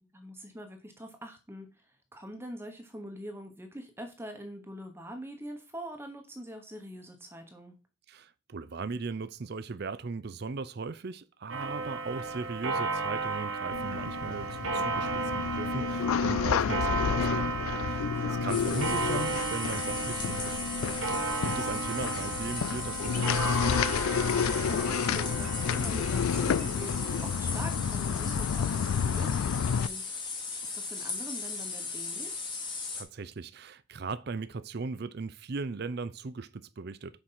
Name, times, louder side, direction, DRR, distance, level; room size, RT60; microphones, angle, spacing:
voice 1, 0.0-7.7 17.9-18.4 24.2-30.0 30.6-32.5, equal, 10° right, 1.1 m, -44 dB
voice 2, 8.1-20.7 21.0-23.8 32.9-37.2, right 4 dB, 50° right, 0.5 m, -38 dB
Clock, 11.5-27.6, right 3 dB, 75° right, 1.5 m, -34 dB
sound 1, 13.7-29.9, left 7 dB, 85° left, 0.3 m, -30 dB
sound 2, 18.5-33.0, left 4 dB, 20° left, 1.4 m, -38 dB
6.7 x 4.7 x 5.6 m
head